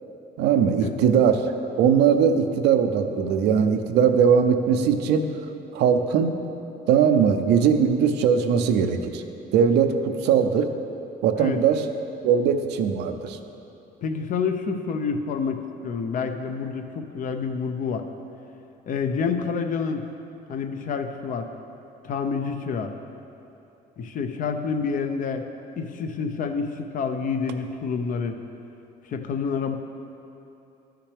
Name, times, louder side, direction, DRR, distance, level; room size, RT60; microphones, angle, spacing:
voice 1, 0.4-1.4 1.8-5.3 5.7-6.3 6.9-9.2 9.5-10.7 11.2-11.9 12.2-13.4, right 7 dB, 80° right, 7 dB, 0.6 m, -20 dB
voice 2, 14.0-18.1 18.9-20.0 20.5-21.5 22.0-22.9 24.0-25.4 25.8-28.4 29.1-29.8, left 5 dB, 50° left, 6 dB, 0.6 m, -28 dB
12.5 x 5.8 x 3.4 m, 2.9 s
cardioid pair, 110°, 17 cm